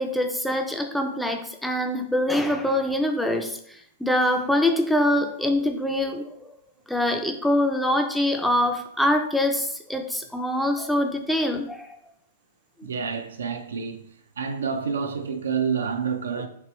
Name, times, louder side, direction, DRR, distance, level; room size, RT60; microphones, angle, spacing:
voice 1, 0.0-3.6 4.0-6.5 6.9-11.9, left 1 dB, ahead, 0.4 m, -24 dB
voice 2, 12.8-14.1 14.4-16.5, right 6 dB, 85° right, 0.4 m, -28 dB
3.0 x 2.9 x 3.0 m
hypercardioid pair, 125°, 0 cm